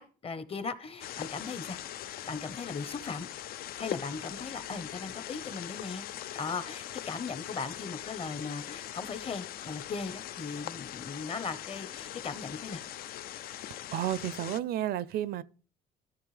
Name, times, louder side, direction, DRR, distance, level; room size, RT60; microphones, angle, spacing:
voice 1, 0.0-1.8 2.0-3.3 3.8-6.0 6.3-12.8, left 4 dB, 35° left, 1.0 m, -38 dB
sound 1, 1.0-14.6, left 12 dB, 65° left, 0.5 m, -41 dB
voice 2, 13.9-15.4, right 12 dB, 65° right, 0.5 m, -31 dB
13.5 x 6.8 x 3.3 m
cardioid pair, 110°, 17 cm